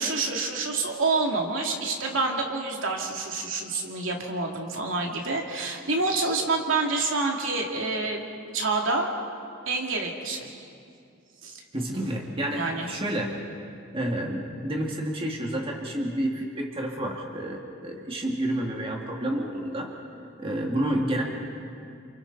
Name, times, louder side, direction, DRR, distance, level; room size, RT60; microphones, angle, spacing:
voice 1, 0.0-8.2 8.5-9.1 9.7-10.5 11.4-11.6 12.5-12.9, right 3 dB, 75° right, 0 dB, 2.7 m, -27 dB
voice 2, 11.7-13.4 13.9-19.9 20.4-21.2, right 1 dB, 25° right, -1 dB, 2.1 m, -29 dB
29.5 x 29.0 x 4.1 m, 2.4 s
head